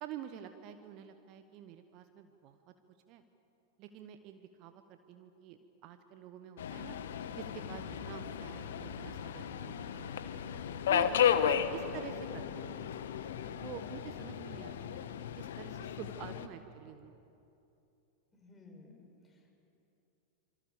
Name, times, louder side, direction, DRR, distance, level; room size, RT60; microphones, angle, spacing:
voice 1, 0.0-2.6 3.1-3.2 3.8-7.0 7.3-10.1 10.9-13.0 13.6-15.0 15.4-17.1, right 10 dB, 40° right, 9 dB, 1.2 m, -48 dB
Subway metro underground, 6.6-16.5, left 9 dB, 60° left, 1.2 m, -34 dB
sound 1, 7.7-15.2, right 2 dB, 25° right, 7.8 m, -59 dB
voice 2, 10.9-11.4 18.3-19.5, left 3 dB, 15° left, 0 dB, 5.8 m, -55 dB
26.5 x 25.5 x 7.0 m, 2.9 s
figure-of-eight pair, 90°, 0 cm